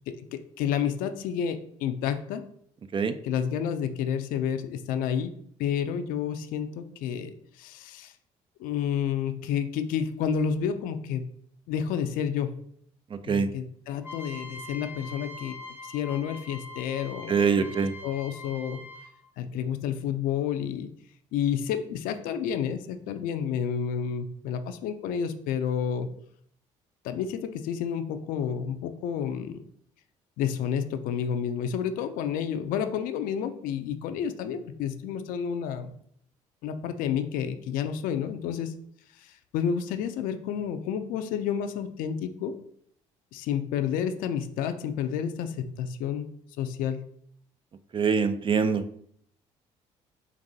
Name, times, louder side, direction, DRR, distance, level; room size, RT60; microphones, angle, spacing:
voice 1, 0.1-2.4 3.2-5.3 5.6-8.1 8.6-11.2 11.7-12.6 13.3-15.6 15.8-17.7 18.0-18.8 19.4-20.9 21.3-26.1 27.0-29.6 30.4-35.9 36.6-38.7 39.2-42.5 43.3-47.0, left 8 dB, 75° left, 9 dB, 0.4 m, -30 dB
sound 1, 14.0-19.3, left 2 dB, 20° right, 1.1 m, -43 dB
voice 2, 17.3-17.9 47.9-48.8, right 6 dB, 35° right, 11 dB, 0.4 m, -24 dB
5.1 x 2.6 x 2.7 m, 0.64 s
supercardioid pair, 65°, 14 cm